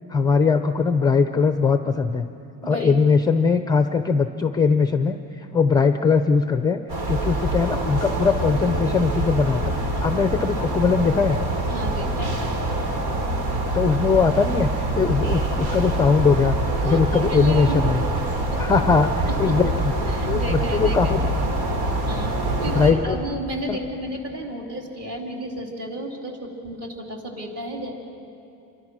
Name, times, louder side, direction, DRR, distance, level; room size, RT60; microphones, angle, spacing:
voice 1, 0.1-2.3 2.6-5.2 5.5-6.8 7.1-11.4 13.7-14.7 14.9-16.6 16.8-18.0 18.6-19.1 19.4-19.9 20.3-21.2 22.7-23.2 23.7-23.8, left 5 dB, 10° left, 8 dB, 0.5 m, -20 dB
voice 2, 2.6-3.0 11.7-12.4 16.8-17.8 18.4-18.7 19.3-19.6 20.1-21.5 21.8-27.9, right 1 dB, 40° right, 1 dB, 3.4 m, -33 dB
sound 1, 6.9-22.9, right 1 dB, 90° right, 3.7 m, -25 dB
27.5 x 24.0 x 6.2 m, 2.8 s
cardioid pair, 165°, 37 cm